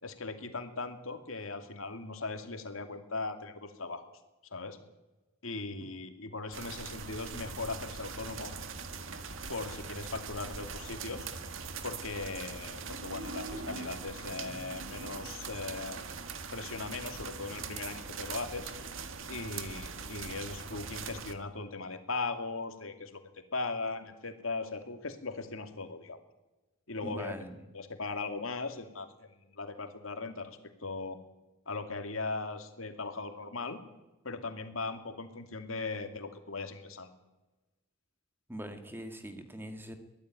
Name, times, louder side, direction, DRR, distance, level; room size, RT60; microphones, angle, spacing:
voice 1, 0.0-4.0 4.5-4.8 5.4-8.5 9.5-11.3 11.8-16.0 16.5-18.7 19.3-26.2 26.9-27.4 27.7-31.2 31.7-33.8 34.2-37.1, left 3 dB, 80° left, 7 dB, 2.6 m, -39 dB
sound 1, 6.5-21.3, right 5 dB, 70° right, 1.8 m, -42 dB
voice 2, 27.0-27.5 38.5-40.0, right 1 dB, 10° right, 7 dB, 1.9 m, -42 dB
23.0 x 15.0 x 9.3 m, 1.1 s
head